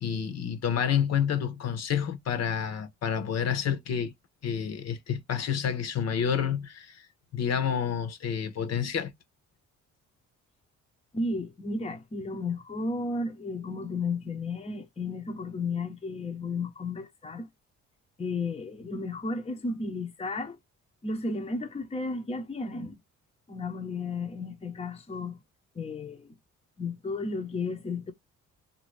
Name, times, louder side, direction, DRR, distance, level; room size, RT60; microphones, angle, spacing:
voice 1, 0.0-4.1 4.4-7.0 7.3-9.1, left 8 dB, 55° left, 0.9 m, -29 dB
voice 2, 11.1-17.5 18.2-20.6 21.0-23.0 23.5-25.4 25.8-26.3 26.8-28.1, left 3 dB, 20° left, 0.7 m, -33 dB
2.7 x 2.6 x 3.1 m
cardioid pair, 90°, 30 cm